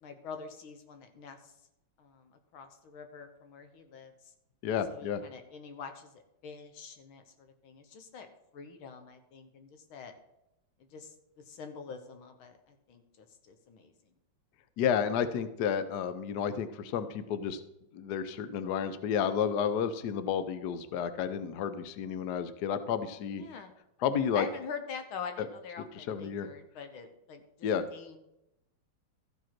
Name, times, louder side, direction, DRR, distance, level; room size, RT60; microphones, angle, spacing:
voice 1, 0.0-1.5 2.0-4.1 4.9-8.3 8.5-10.1 10.8-11.1 11.5-13.9 23.3-23.7 24.3-28.2, left 5 dB, 80° left, 7 dB, 1.9 m, -45 dB
voice 2, 4.6-5.2 14.8-17.6 17.9-23.4 24.0-24.5 25.4-25.5 26.0-26.5 27.6-27.8, left 8 dB, 65° left, 11 dB, 1.1 m, -31 dB
14.0 x 5.0 x 5.9 m, 0.87 s
omnidirectional pair, 2.3 m